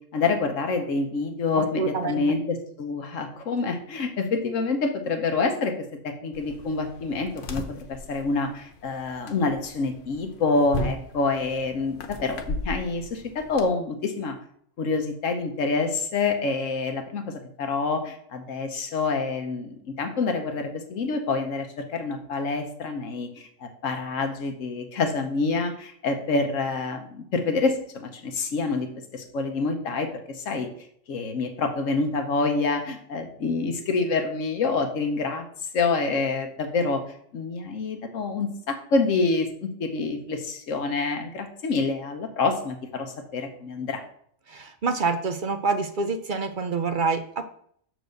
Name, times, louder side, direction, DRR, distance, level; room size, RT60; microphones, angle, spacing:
voice 1, 0.1-5.7 6.0-7.6 8.1-14.3 14.8-28.9 29.1-30.1 30.4-30.7 31.1-35.4 35.7-37.0 37.3-39.5 39.8-44.0, left 3 dB, 75° left, 6 dB, 1.2 m, -27 dB
voice 2, 1.5-2.4 44.5-47.4, right 4 dB, 50° right, 8 dB, 0.6 m, -27 dB
sound 1, 6.3-13.7, left 2 dB, 50° left, 0.9 m, -36 dB
6.4 x 4.7 x 6.6 m, 0.64 s
omnidirectional pair, 1.4 m